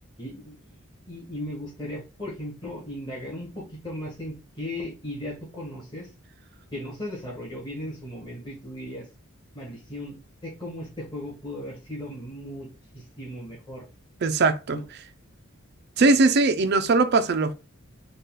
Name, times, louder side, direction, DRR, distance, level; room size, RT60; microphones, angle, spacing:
voice 1, 0.2-0.6 1.1-6.1 6.7-9.1 9.5-12.7 12.9-13.8 14.7-14.8, left 1 dB, 20° left, 1.4 m, -37 dB
voice 2, 14.2-14.8 16.0-17.5, right 3 dB, 50° right, 0.4 m, -20 dB
4.0 x 2.4 x 3.8 m
head